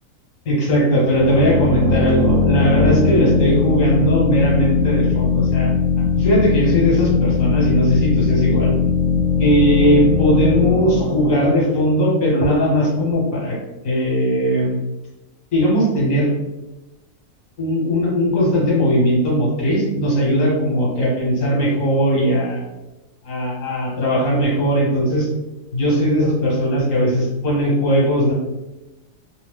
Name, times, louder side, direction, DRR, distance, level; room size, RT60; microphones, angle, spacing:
voice 1, 0.4-5.7 6.2-8.7 9.4-13.6 13.8-14.7 15.5-16.3 17.6-22.6 23.2-25.3 25.7-28.3, equal, 60° left, -5 dB, 1.4 m, -18 dB
sound 1, 1.0-12.5, left 5 dB, 70° right, 0.9 m, -19 dB
2.8 x 2.1 x 3.4 m, 1.0 s
omnidirectional pair, 1.7 m